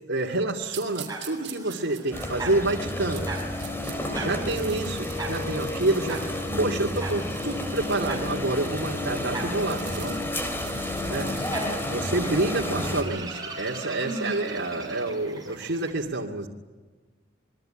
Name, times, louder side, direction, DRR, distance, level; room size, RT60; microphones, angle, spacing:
voice 1, 0.1-3.3 4.1-10.2 11.1-11.3 11.9-16.5, right 2 dB, 80° right, -3 dB, 2.4 m, -28 dB
sound 1, 0.7-4.0 4.3-13.0, right 12 dB, 60° right, 5.9 m, -45 dB
sound 2, 0.8-15.9, right 3 dB, 20° right, 6.2 m, -41 dB
sound 3, 2.1-13.0, left 1 dB, 10° left, 3.7 m, -31 dB
voice 2, 3.9-4.9 6.4-7.0 11.2-11.8 12.3-12.7 14.0-14.4, left 1 dB, 30° left, 4 dB, 7.3 m, -37 dB
27.5 x 23.0 x 8.9 m, 1.3 s
head